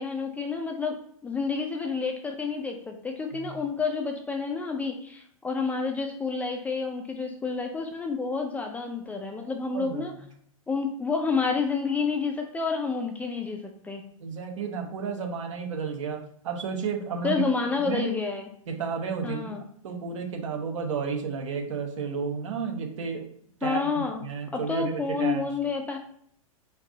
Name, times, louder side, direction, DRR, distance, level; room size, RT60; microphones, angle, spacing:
voice 1, 0.0-10.1 10.7-14.0 17.2-18.5 19.2-19.6 23.6-24.2 24.5-26.0, left 4 dB, 10° left, 3 dB, 0.4 m, -29 dB
voice 2, 9.7-10.1 14.2-17.4 17.8-18.0 18.7-19.6 19.8-23.3 23.6-25.5, right 6 dB, 60° right, 4 dB, 0.9 m, -32 dB
4.5 x 2.5 x 3.9 m, 0.63 s
figure-of-eight pair, 105°, 18 cm